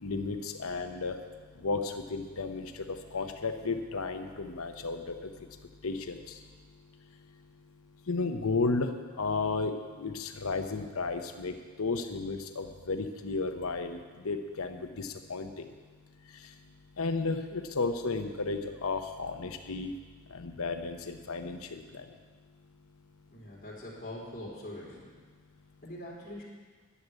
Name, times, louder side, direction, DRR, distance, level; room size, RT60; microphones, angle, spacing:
voice 1, 0.0-1.2 1.6-2.7 3.1-5.0 5.8-6.2 8.1-8.9 9.2-9.7 10.0-11.5 11.8-14.0 14.2-15.5 17.0-19.9 20.3-21.8, left 3 dB, 65° left, 7 dB, 0.8 m, -33 dB
voice 2, 23.3-25.1 25.8-26.4, left 1 dB, 35° left, -7 dB, 3.9 m, -43 dB
11.5 x 7.0 x 9.4 m, 1.5 s
head